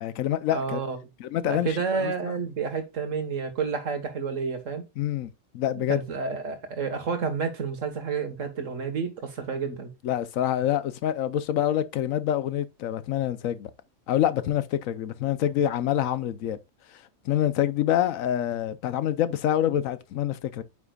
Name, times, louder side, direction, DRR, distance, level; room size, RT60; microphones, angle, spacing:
voice 1, 0.0-0.8 1.2-2.3 5.0-5.3 5.5-6.0 10.0-13.7 14.1-16.6 17.2-20.6, left 11 dB, 85° left, 1.1 m, -26 dB
voice 2, 0.5-1.0 1.4-4.8 5.7-9.9, right 5 dB, 70° right, 1.8 m, -30 dB
9.1 x 5.9 x 2.3 m
omnidirectional pair, 1.4 m